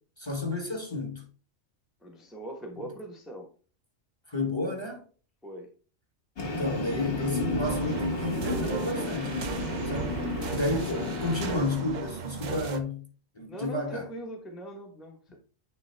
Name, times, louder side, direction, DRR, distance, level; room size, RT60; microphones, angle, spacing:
voice 1, 0.2-1.2 2.7-2.9 4.3-5.0 6.4-9.4 9.9-10.2 10.5-13.0 13.3-14.1, left 2 dB, 20° left, 1.2 m, -31 dB
voice 2, 2.0-3.5 5.4-5.7 13.5-15.4, right 1 dB, ahead, 0.9 m, -41 dB
Train, 6.4-11.6, left 2 dB, 55° left, 1.6 m, -32 dB
sound 1, 7.6-12.8, right 5 dB, 50° right, 0.5 m, -36 dB
9.1 x 3.4 x 3.3 m
omnidirectional pair, 1.4 m